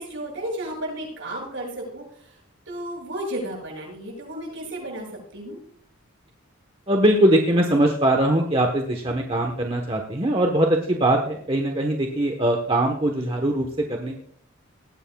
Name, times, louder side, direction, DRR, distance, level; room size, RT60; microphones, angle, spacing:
voice 1, 0.0-2.0 2.7-5.1 5.3-5.6, right 1 dB, 60° right, -2 dB, 7.2 m, -33 dB
voice 2, 6.9-14.2, right 1 dB, 25° right, 2 dB, 1.1 m, -21 dB
19.0 x 16.5 x 2.3 m, 0.64 s
head